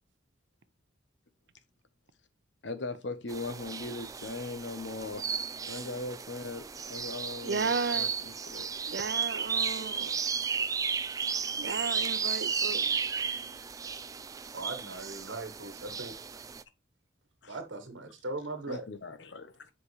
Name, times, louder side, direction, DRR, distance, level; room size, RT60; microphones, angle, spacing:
voice 1, 2.6-5.2 5.7-8.7 13.3-13.4 17.4-17.5 18.7-19.7, left 3 dB, 70° left, 1.0 m, -39 dB
sound 1, 3.3-16.6, right 6 dB, 20° right, 0.3 m, -34 dB
voice 2, 7.4-8.1 8.9-10.2 11.6-13.0, right 4 dB, 60° right, 0.7 m, -34 dB
voice 3, 14.5-16.2 17.5-18.9, right 2 dB, 85° right, 1.3 m, -39 dB
7.4 x 5.1 x 3.2 m
head